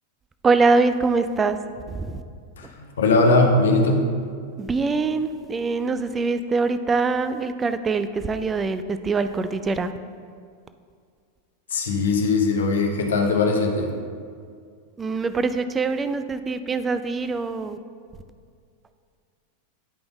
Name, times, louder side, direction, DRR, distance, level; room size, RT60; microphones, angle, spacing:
voice 1, 0.4-1.6 1.9-2.2 4.6-9.9 15.0-17.8, right 4 dB, 15° right, 10 dB, 0.4 m, -23 dB
voice 2, 2.6-4.1 11.7-13.9, left 3 dB, 65° left, 2 dB, 0.8 m, -20 dB
9.5 x 5.2 x 3.4 m, 2.1 s
figure-of-eight pair, 90°, 0 cm